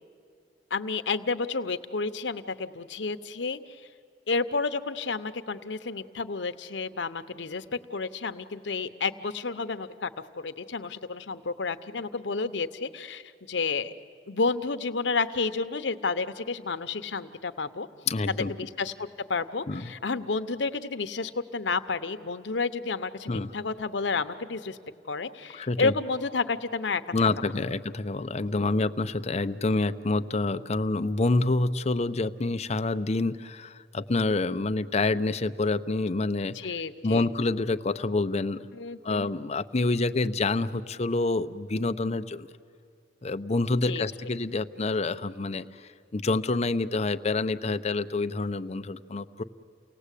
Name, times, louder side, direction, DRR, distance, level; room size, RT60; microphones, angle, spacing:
voice 1, 0.7-3.8 4.3-7.6 7.9-10.1 10.4-13.9 14.3-17.9 18.3-24.8 25.1-27.3 28.5-28.7 36.5-37.3 38.7-39.3 43.9-44.0, left 4 dB, 90° left, 10 dB, 0.9 m, -31 dB
voice 2, 18.1-18.5 19.7-19.9 23.3-23.5 25.5-25.9 27.1-36.6 37.0-38.6 39.0-42.5 43.2-49.4, left 3 dB, 40° left, 10 dB, 0.6 m, -27 dB
29.5 x 18.0 x 8.3 m, 2.3 s
head